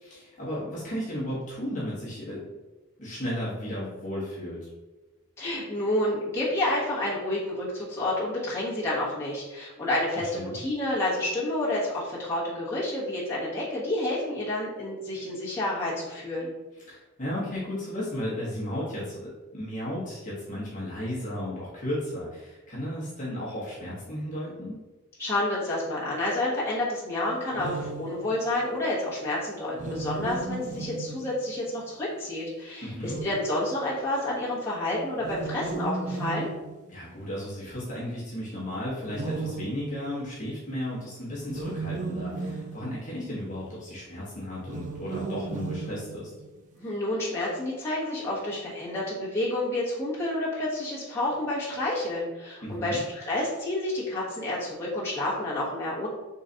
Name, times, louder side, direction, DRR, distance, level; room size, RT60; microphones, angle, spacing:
voice 1, 0.0-2.4 3.0-4.7 10.3-10.6 16.8-24.8 32.8-33.2 36.9-46.3 52.6-53.0, left 1 dB, 35° left, -7 dB, 1.1 m, -34 dB
voice 2, 5.4-16.5 25.2-36.5 46.8-56.1, left 1 dB, 10° left, -9 dB, 1.2 m, -29 dB
sound 1, 27.5-28.6 29.7-31.7 32.9-34.0 35.2-37.2 39.1-40.5 41.4-43.4 44.6-46.6, right 3 dB, 35° right, 0.4 m, -36 dB
3.8 x 3.1 x 3.9 m, 1.1 s
head